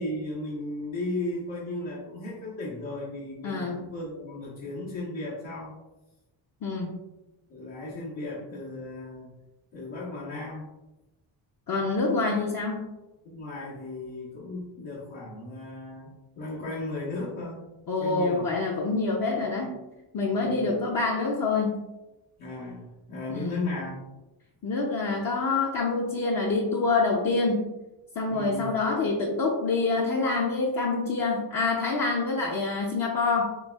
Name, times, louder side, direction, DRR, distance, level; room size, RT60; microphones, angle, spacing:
voice 1, 0.0-5.7 7.5-9.3 9.7-10.7 13.2-17.7 18.0-18.5 20.4-20.8 22.4-24.0 28.3-28.7, left 2 dB, 80° left, -8 dB, 1.2 m, -36 dB
voice 2, 3.4-3.8 6.6-7.0 11.7-12.9 17.9-19.7 20.1-21.9 23.3-23.7 24.6-27.7 28.2-33.5, left 3 dB, 45° left, -2 dB, 0.6 m, -26 dB
6.8 x 2.4 x 2.3 m, 1.0 s
cardioid pair, 100°, 48 cm